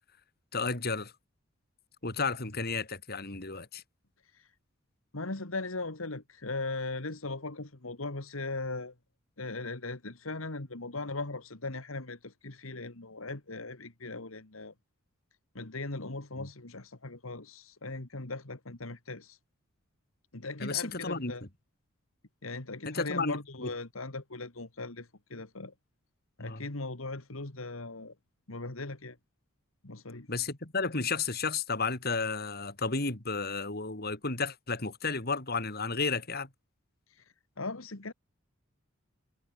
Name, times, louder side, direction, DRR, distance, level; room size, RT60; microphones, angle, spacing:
voice 1, 0.5-1.1 2.0-3.8 16.4-16.5 20.6-21.3 22.9-23.7 26.4-26.7 30.3-36.5, left 4 dB, 50° left, 3.4 m, -32 dB
voice 2, 5.1-8.9 9.4-14.7 15.5-19.4 20.3-21.4 22.4-25.7 26.4-28.1 28.5-29.2 29.8-30.3 37.6-38.1, left 3 dB, 80° left, 2.2 m, -39 dB
head